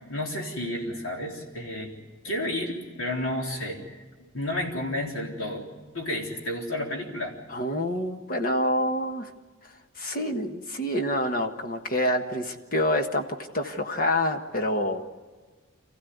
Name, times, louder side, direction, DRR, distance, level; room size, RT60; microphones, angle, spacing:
voice 1, 0.0-1.9 2.2-4.0 4.3-5.7 5.9-7.4, left 1 dB, 70° left, -1 dB, 4.0 m, -31 dB
voice 2, 7.5-9.3 10.0-13.2 13.5-15.1, left 1 dB, 45° left, 5 dB, 1.5 m, -27 dB
26.5 x 15.5 x 9.5 m, 1.4 s
head